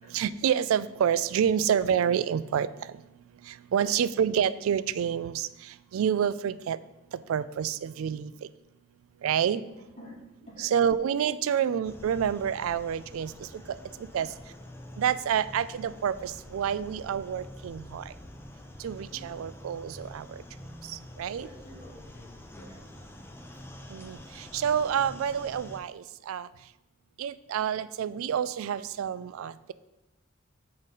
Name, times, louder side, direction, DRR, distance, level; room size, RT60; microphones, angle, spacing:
voice 1, 0.1-2.9 3.5-6.8 7.3-8.3 9.2-9.6 10.6-13.8 14.1-14.3 15.0-18.1 18.8-20.4 20.9-21.5 23.9-26.5 27.2-29.7, right 8 dB, 80° right, 16 dB, 0.3 m, -28 dB
voice 2, 9.8-10.2 10.5-10.7 13.4-13.9 19.1-19.4 21.4-22.3 22.6-22.8, equal, 35° left, -4 dB, 2.3 m, -50 dB
sound 1, 11.8-25.8, left 1 dB, 10° left, 0.6 m, -46 dB
7.3 x 3.9 x 5.2 m, 0.96 s
head